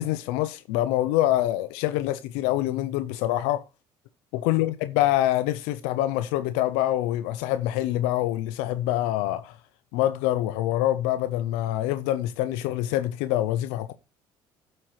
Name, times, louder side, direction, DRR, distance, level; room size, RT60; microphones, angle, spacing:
voice 1, 0.0-3.6 4.3-9.6 9.9-13.9, left 14 dB, 85° left, 0.5 m, -25 dB
12.5 x 7.6 x 3.1 m
supercardioid pair, 80°, 11 cm